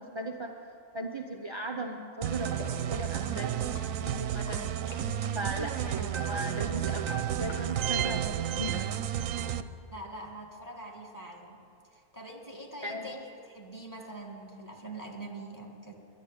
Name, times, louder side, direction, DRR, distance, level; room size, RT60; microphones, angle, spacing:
voice 1, 0.0-3.7 4.0-4.7 5.3-8.8 12.8-13.1, right 1 dB, 35° right, 2 dB, 0.4 m, -38 dB
sound 1, 2.2-8.2, left 2 dB, 60° left, 2.0 m, -49 dB
sound 2, 2.2-9.6, right 10 dB, 70° right, 0.9 m, -31 dB
voice 2, 9.9-11.6 11.9-15.9, right 2 dB, 10° left, 0 dB, 1.8 m, -44 dB
11.5 x 11.0 x 9.1 m, 2.5 s
omnidirectional pair, 1.6 m